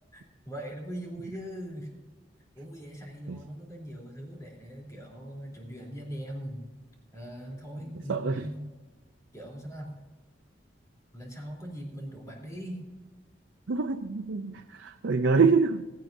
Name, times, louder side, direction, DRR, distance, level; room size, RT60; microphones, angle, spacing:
voice 1, 0.1-1.9 2.5-6.6 7.1-8.7 9.3-9.9 11.1-12.8, equal, 20° left, -1 dB, 3.3 m, -40 dB
voice 2, 8.1-8.5 13.7-15.8, right 4 dB, 85° right, 6 dB, 0.6 m, -25 dB
16.5 x 16.0 x 2.7 m, 1.3 s
head